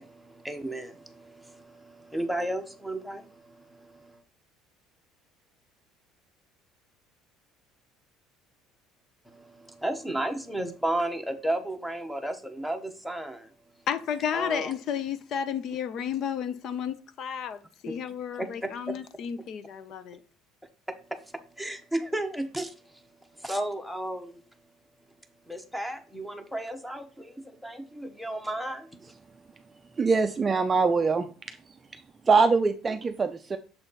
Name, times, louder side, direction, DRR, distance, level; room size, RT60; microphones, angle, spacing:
voice 1, 0.0-4.2 9.3-13.5 14.3-14.7 17.9-18.0 18.4-18.9 20.9-23.1 23.3-24.4 25.5-30.1, right 1 dB, ahead, 0.8 m, -34 dB
voice 2, 13.9-20.2, left 8 dB, 45° left, 0.6 m, -32 dB
voice 3, 30.0-31.3 32.3-33.6, right 4 dB, 20° right, 0.4 m, -23 dB
7.0 x 4.0 x 3.9 m
cardioid pair, 150°, 0 cm